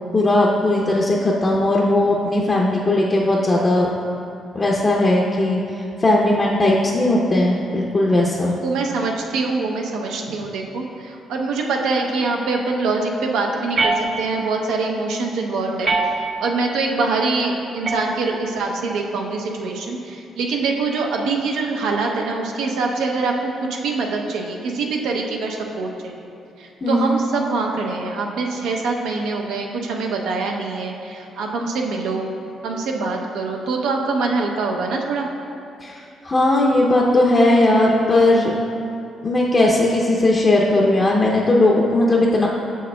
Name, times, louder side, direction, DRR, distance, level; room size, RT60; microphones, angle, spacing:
voice 1, 0.1-3.9 4.5-5.6 6.0-8.5 26.8-27.3 35.8-38.5 39.2-42.5, left 1 dB, 30° left, -3 dB, 0.5 m, -18 dB
voice 2, 8.6-15.9 16.4-26.3 26.6-32.3 32.6-35.3, right 3 dB, 85° right, 1 dB, 0.6 m, -24 dB
sound 1, 13.7-14.6 15.8-16.6 17.8-18.7, right 3 dB, 40° right, 0.4 m, -24 dB
6.8 x 6.5 x 2.2 m, 2.6 s
cardioid pair, 90°, 0 cm